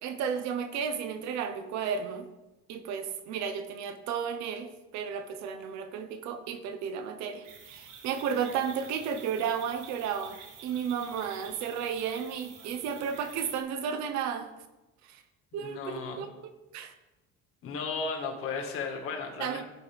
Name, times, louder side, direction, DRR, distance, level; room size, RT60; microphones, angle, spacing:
voice 1, 0.0-2.3 2.7-14.5 15.1-15.2 15.5-16.9 19.4-19.6, right 7 dB, 60° right, 9 dB, 1.1 m, -33 dB
sound 1, 7.4-13.6, right 6 dB, 80° right, 3.5 m, -49 dB
voice 2, 15.5-16.3 17.6-19.6, left 4 dB, 45° left, 2 dB, 1.9 m, -35 dB
16.5 x 5.7 x 3.6 m, 1.0 s
cardioid pair, 175°, 31 cm